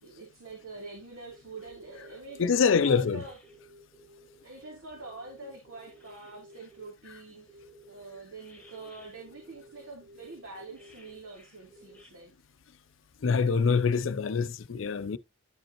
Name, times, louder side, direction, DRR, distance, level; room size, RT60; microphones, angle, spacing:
voice 1, 0.0-3.4 4.4-12.3, right 3 dB, 85° right, 3.1 m, -45 dB
sound 1, 1.3-6.9 7.5-12.1, equal, 5° left, 1.7 m, -54 dB
voice 2, 2.4-3.2 13.2-15.2, left 5 dB, 70° left, 0.5 m, -25 dB
11.5 x 5.2 x 3.0 m
head